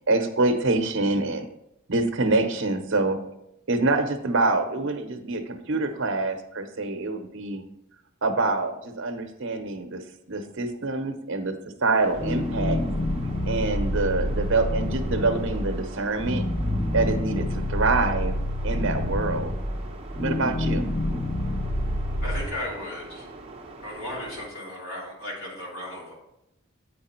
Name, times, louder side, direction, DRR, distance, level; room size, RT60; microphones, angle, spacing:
voice 1, 0.0-1.5 1.9-3.2 3.7-7.6 8.2-10.0 10.3-11.5 11.8-12.8 13.5-16.4 16.9-18.3 18.6-19.5 20.2-20.9, right 3 dB, 60° right, 6 dB, 0.8 m, -25 dB
sound 1, 12.0-24.5, right 2 dB, 30° right, 0.8 m, -43 dB
sound 2, 12.1-22.5, left 1 dB, 20° left, 0.5 m, -28 dB
voice 2, 22.2-23.3 23.8-26.1, left 1 dB, 70° left, -5 dB, 3.0 m, -35 dB
8.4 x 4.8 x 4.3 m, 0.82 s
head